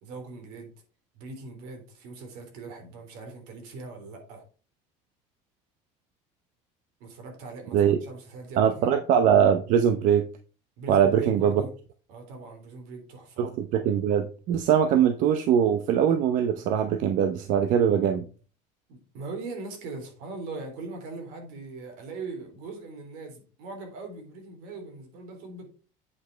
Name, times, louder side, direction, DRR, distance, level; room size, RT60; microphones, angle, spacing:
voice 1, 0.0-0.7 1.1-4.4 7.0-8.9 10.8-11.7 12.1-13.5 18.9-25.7, right 3 dB, 80° right, 3.4 m, -40 dB
voice 2, 8.6-10.3 10.9-11.5 13.4-18.3, right 8 dB, 60° right, 0.8 m, -22 dB
8.5 x 5.2 x 4.5 m
cardioid pair, 145°, 15 cm